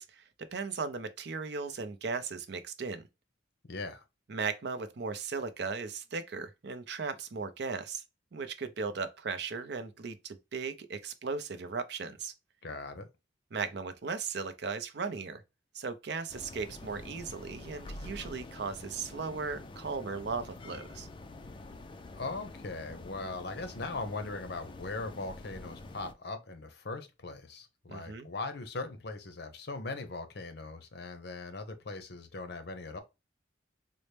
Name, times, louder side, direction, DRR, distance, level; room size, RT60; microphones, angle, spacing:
voice 1, 0.0-3.1 4.3-8.0 8.3-12.3 13.5-15.4 15.7-21.1 27.9-28.3, right 4 dB, 60° right, 0.5 m, -37 dB
voice 2, 3.7-4.0 12.6-13.1 22.2-33.0, left 3 dB, 60° left, 0.7 m, -40 dB
sound 1, 16.3-26.1, left 2 dB, 25° left, 0.4 m, -47 dB
4.1 x 2.1 x 3.2 m
head